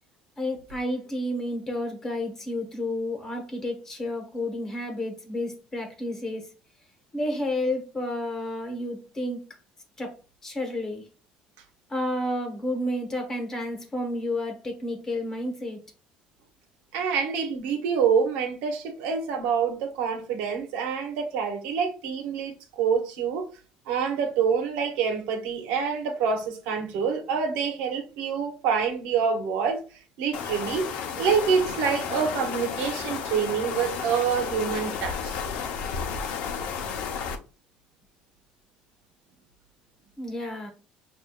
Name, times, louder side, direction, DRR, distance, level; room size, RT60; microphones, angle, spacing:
voice 1, 0.4-6.5 7.1-9.5 10.0-10.2 10.4-11.1 11.9-15.8 40.2-40.7, left 1 dB, 20° left, 1.2 m, -31 dB
voice 2, 16.9-23.5 23.9-29.8 30.2-30.9 31.2-35.4, right 6 dB, 85° right, 1.1 m, -26 dB
sound 1, 30.3-37.3, left 6 dB, 65° left, 0.7 m, -32 dB
6.4 x 2.6 x 2.4 m
cardioid pair, 160°, 3 cm